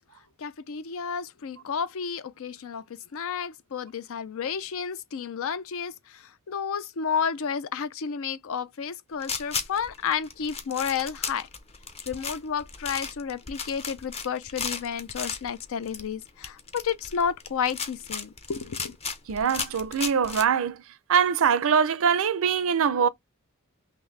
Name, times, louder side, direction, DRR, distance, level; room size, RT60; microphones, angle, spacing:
voice 1, 0.4-11.5 12.1-19.0, left 7 dB, 65° left, 0.5 m, -31 dB
sound 1, 9.2-20.4, left 5 dB, 30° left, 0.7 m, -35 dB
voice 2, 19.3-20.8 21.1-23.1, right 7 dB, 65° right, 0.5 m, -23 dB
5.9 x 2.1 x 3.2 m
head